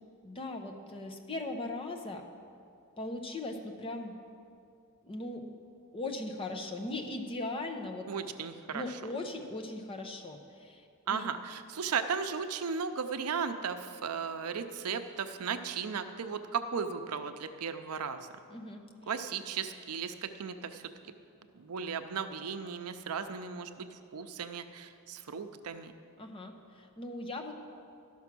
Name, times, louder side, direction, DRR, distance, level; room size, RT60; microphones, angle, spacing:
voice 1, 0.2-2.2 3.0-4.1 5.0-5.5 5.9-8.1 8.7-11.3 18.5-18.8 26.2-27.5, left 2 dB, 25° left, 4 dB, 0.7 m, -39 dB
voice 2, 8.1-9.0 11.1-18.3 19.1-20.8 21.5-25.9, right 6 dB, 85° right, 9 dB, 0.6 m, -36 dB
12.5 x 5.9 x 6.0 m, 2.4 s
head